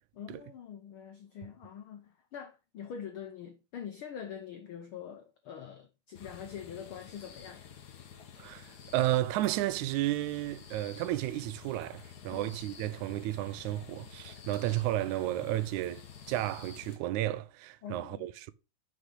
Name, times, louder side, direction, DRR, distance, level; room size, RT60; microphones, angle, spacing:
voice 1, 0.1-7.7 12.3-12.5 17.8-18.3, left 8 dB, 80° left, 1.2 m, -44 dB
sound 1, 6.1-17.0, left 7 dB, 65° left, 1.0 m, -50 dB
voice 2, 8.4-16.0 16.3-18.5, right 15 dB, 80° right, 1.9 m, -32 dB
6.4 x 6.3 x 5.5 m
omnidirectional pair, 3.4 m